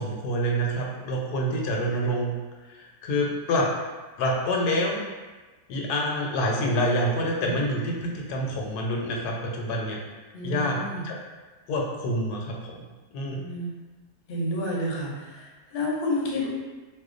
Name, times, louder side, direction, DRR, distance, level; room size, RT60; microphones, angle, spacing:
voice 1, 0.0-2.3 2.6-3.7 4.2-5.0 5.7-10.0 10.4-10.8 11.0-11.2 11.7-12.8 13.1-13.4, equal, 80° left, -1 dB, 1.1 m, -27 dB
voice 2, 10.3-11.1 13.3-13.7 14.3-16.5, left 1 dB, 55° left, -4 dB, 0.7 m, -30 dB
2.7 x 2.1 x 3.7 m, 1.3 s
omnidirectional pair, 1.7 m